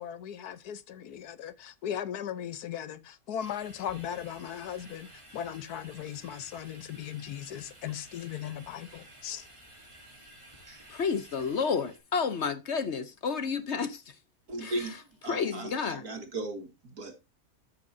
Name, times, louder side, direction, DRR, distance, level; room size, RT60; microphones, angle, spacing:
voice 1, 0.0-9.5, left 10 dB, 80° left, 1.4 m, -38 dB
sound 1, 3.4-12.0, right 1 dB, 20° right, 2.8 m, -53 dB
voice 2, 10.9-14.1 14.6-14.7 15.3-16.0, left 5 dB, 55° left, 1.0 m, -30 dB
voice 3, 14.5-17.2, right 2 dB, 75° right, 2.4 m, -37 dB
12.5 x 6.3 x 2.6 m
omnidirectional pair, 1.6 m